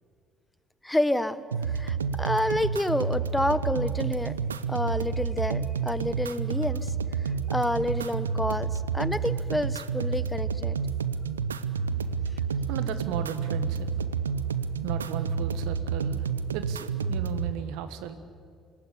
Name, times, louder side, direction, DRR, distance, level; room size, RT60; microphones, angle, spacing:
voice 1, 0.8-4.3 4.7-6.9 7.2-10.7, left 1 dB, 10° left, 16 dB, 1.1 m, -29 dB
sound 1, 1.5-17.5, right 6 dB, 90° right, 0.6 m, -29 dB
voice 2, 12.7-13.9 14.8-18.2, right 10 dB, 70° right, 11 dB, 1.3 m, -35 dB
25.5 x 14.5 x 9.9 m, 2.2 s
hypercardioid pair, 50°, 0 cm